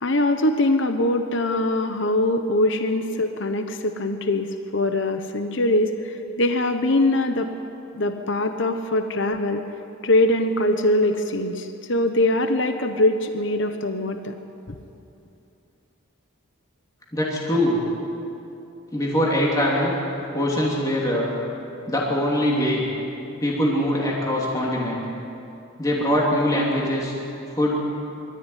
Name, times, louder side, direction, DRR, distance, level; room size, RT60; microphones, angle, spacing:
voice 1, 0.0-7.5 7.9-9.6 10.0-14.3, left 1 dB, 55° left, 7 dB, 1.1 m, -22 dB
voice 2, 17.1-17.8 18.9-19.9 20.3-21.3 21.9-22.8 23.4-25.0 25.8-27.1 27.5-27.8, equal, 15° left, -4 dB, 2.9 m, -22 dB
24.5 x 14.0 x 9.3 m, 2.8 s
head